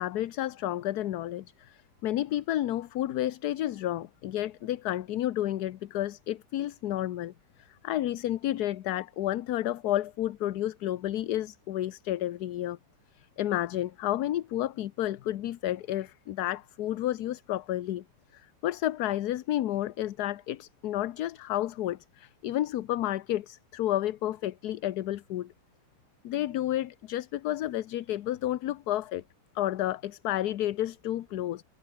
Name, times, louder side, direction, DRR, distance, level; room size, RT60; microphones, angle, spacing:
voice 1, 0.0-7.3 7.6-12.8 13.1-18.0 18.3-25.5 26.2-29.2 29.5-31.6, left 13 dB, 75° left, 1.3 m, -31 dB
omnidirectional pair, 1.7 m